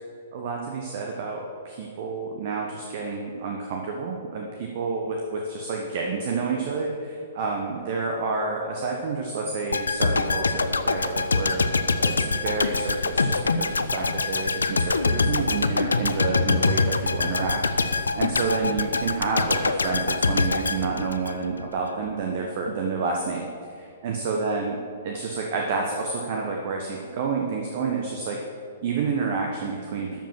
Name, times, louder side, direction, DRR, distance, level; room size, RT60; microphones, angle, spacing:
voice 1, 0.3-11.7 12.0-28.4 28.8-30.2, right 4 dB, 45° right, 1 dB, 1.2 m, -29 dB
sound 1, 9.7-21.7 22.0-22.2, left 3 dB, 75° left, 0.5 m, -24 dB
12.5 x 5.1 x 7.5 m, 2.4 s
figure-of-eight pair, 110°, 0 cm